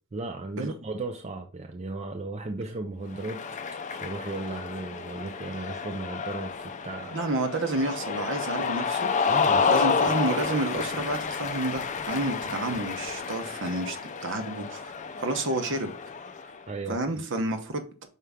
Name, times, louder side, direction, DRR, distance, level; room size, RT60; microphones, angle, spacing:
voice 1, 0.1-3.4 3.9-7.2 9.3-9.8 16.7-17.0, right 2 dB, 30° right, 0.5 m, -35 dB
Cheering, 3.1-16.6, left 5 dB, 35° left, 0.5 m, -30 dB
voice 2, 7.1-9.3 9.7-14.9 15.2-15.9 16.9-18.1, right 2 dB, 60° right, 1.0 m, -30 dB
5.7 x 4.7 x 3.6 m
head